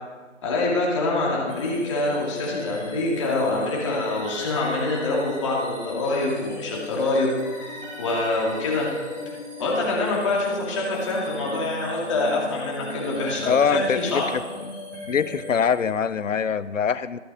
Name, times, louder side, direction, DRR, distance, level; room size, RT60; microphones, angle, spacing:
voice 1, 0.4-7.3 8.0-8.9 9.6-14.3, left 2 dB, 25° left, -4 dB, 2.5 m, -25 dB
sound 1, 1.5-16.2, left 2 dB, 5° left, 3.3 m, -37 dB
voice 2, 13.5-14.4 15.1-17.2, left 7 dB, 85° left, 17 dB, 0.6 m, -23 dB
14.5 x 6.6 x 5.1 m, 1.4 s
figure-of-eight pair, 155°, 37 cm